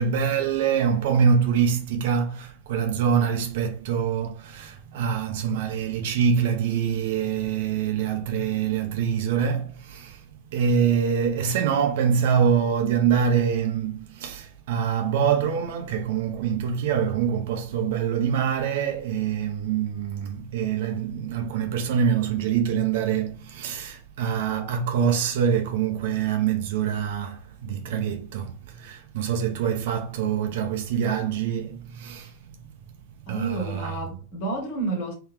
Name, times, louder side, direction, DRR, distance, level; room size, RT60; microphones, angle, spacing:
voice 1, 0.0-32.6 33.3-34.0, right 7 dB, 55° right, 0.8 m, -25 dB
voice 2, 33.3-35.1, right 3 dB, 45° left, 1.6 m, -30 dB
3.9 x 2.7 x 3.2 m
figure-of-eight pair, 90°, 0 cm